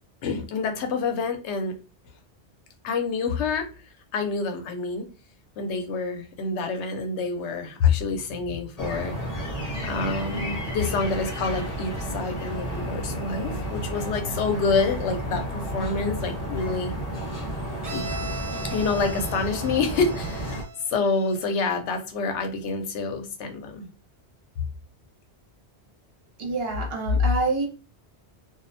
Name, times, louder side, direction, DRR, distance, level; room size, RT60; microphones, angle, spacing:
voice 1, 0.2-1.7 2.8-3.7 4.1-5.1 5.6-9.1 9.8-16.9 17.9-18.2 18.6-20.6 20.9-23.9, left 4 dB, 85° left, 5 dB, 0.9 m, -27 dB
sound 1, 8.8-20.6, equal, 45° left, 0.6 m, -32 dB
Bowed string instrument, 17.8-21.6, right 2 dB, 40° right, 0.5 m, -39 dB
voice 2, 26.4-27.7, left 1 dB, 65° right, 0 dB, 1.0 m, -24 dB
2.3 x 2.1 x 2.6 m, 0.35 s
omnidirectional pair, 1.1 m